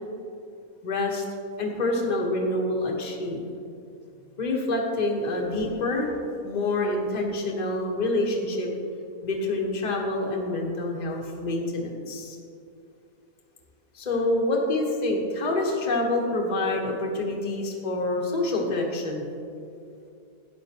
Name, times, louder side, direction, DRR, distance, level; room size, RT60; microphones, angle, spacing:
voice 1, 0.8-1.2 1.6-3.4 4.4-6.1 6.4-8.7 9.2-12.4 13.9-19.3, left 2 dB, 30° left, -1 dB, 1.2 m, -27 dB
12.5 x 9.0 x 2.9 m, 2.6 s
omnidirectional pair, 1.6 m